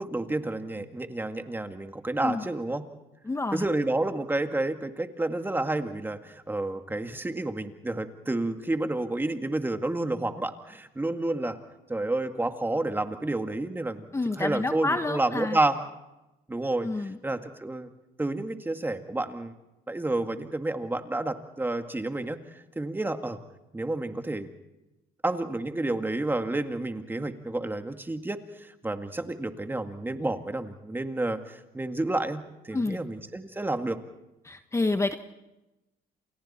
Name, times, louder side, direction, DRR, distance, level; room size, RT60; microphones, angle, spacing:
voice 1, 0.0-2.8 3.5-11.6 11.9-14.1 14.4-15.8 16.5-17.9 18.2-19.5 19.9-23.4 23.7-24.5 25.2-34.0, right 2 dB, 10° right, 7 dB, 2.0 m, -30 dB
voice 2, 3.3-3.7 14.1-15.6 16.8-17.2 32.7-33.0 34.4-35.2, left 2 dB, 15° left, 8 dB, 1.2 m, -28 dB
30.0 x 27.5 x 4.3 m, 0.99 s
cardioid pair, 110°, 17 cm